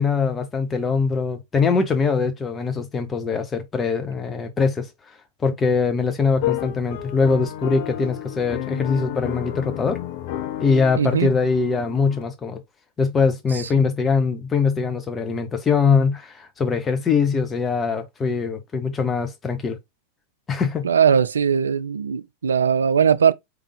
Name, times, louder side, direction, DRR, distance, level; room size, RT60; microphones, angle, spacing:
voice 1, 0.0-4.9 5.4-10.0 10.6-12.6 13.0-19.8 20.5-20.9, left 5 dB, 20° left, 0.8 m, -22 dB
sound 1, 6.3-12.2, left 13 dB, 50° left, 0.5 m, -31 dB
voice 2, 11.0-11.4 13.5-13.7 20.8-23.3, right 7 dB, 70° right, 0.3 m, -19 dB
3.7 x 3.3 x 3.3 m
figure-of-eight pair, 90°, 0 cm